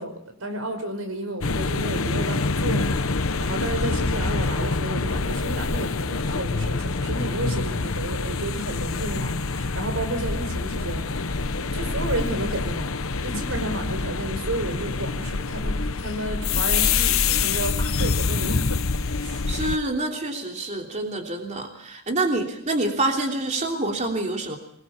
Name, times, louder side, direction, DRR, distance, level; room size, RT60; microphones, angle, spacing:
voice 1, 0.0-11.3 11.6-12.9 13.2-18.6 19.2-19.4, right 1 dB, 90° right, 8 dB, 5.1 m, -32 dB
sound 1, 1.4-19.8, left 4 dB, 75° left, 1.1 m, -26 dB
voice 2, 19.5-24.6, right 2 dB, 35° right, 2 dB, 3.1 m, -27 dB
23.5 x 20.5 x 7.1 m, 0.66 s
head